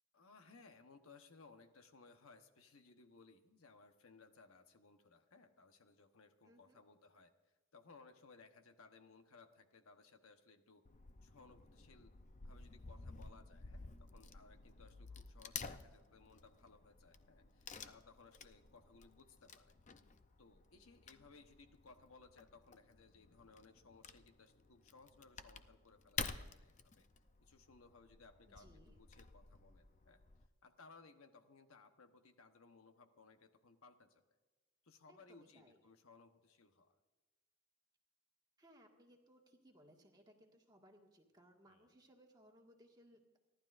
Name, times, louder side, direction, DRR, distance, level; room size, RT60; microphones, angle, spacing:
voice 1, 0.1-7.3 7.7-10.8 11.2-12.1 12.4-19.8 20.4-27.1 27.4-30.2 30.6-34.2 34.8-36.9 41.7-41.9, left 4 dB, 75° left, 7 dB, 1.1 m, -63 dB
voice 2, 6.5-6.8 28.5-29.0 35.1-35.8 38.6-43.4, equal, 20° right, 0 dB, 1.8 m, -65 dB
Wood / Tearing, 10.9-30.5, left 5 dB, 35° left, 0.6 m, -52 dB
30.0 x 12.0 x 2.5 m, 1.2 s
head